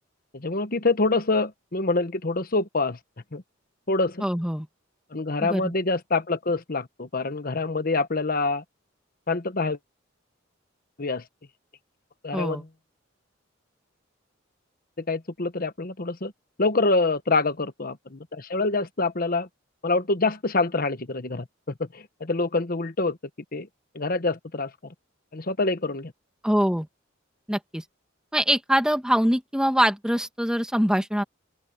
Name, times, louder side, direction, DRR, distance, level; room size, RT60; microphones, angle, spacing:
voice 1, 0.3-3.0 3.3-3.4 3.9-4.3 5.1-8.6 9.3-9.8 11.0-11.2 12.2-12.6 15.0-16.3 16.6-19.5 19.8-21.5 21.9-23.2 23.5-23.7 23.9-24.9 25.3-26.1, left 3 dB, 50° left, 1.2 m, -26 dB
voice 2, 4.2-4.7 5.4-5.7 12.3-12.6 26.4-26.9 27.5-27.8 28.3-31.2, equal, 5° right, 1.7 m, -23 dB
open air
head